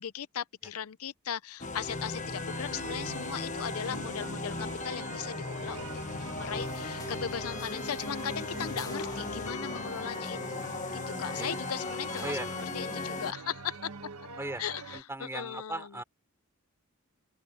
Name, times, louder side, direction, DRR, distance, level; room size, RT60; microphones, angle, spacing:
voice 1, 0.0-10.6 11.1-12.4 12.7-13.9 14.6-16.0, left 8 dB, 70° left, 0.6 m, -38 dB
sound 1, 1.6-13.3, left 3 dB, 35° left, 1.2 m, -37 dB
sound 2, 1.9-15.0, right 4 dB, 75° right, 1.6 m, -44 dB
sound 3, 6.5-13.3, left 2 dB, 15° left, 2.1 m, -48 dB
voice 2, 14.9-16.0, right 1 dB, 10° right, 3.7 m, -37 dB
open air
head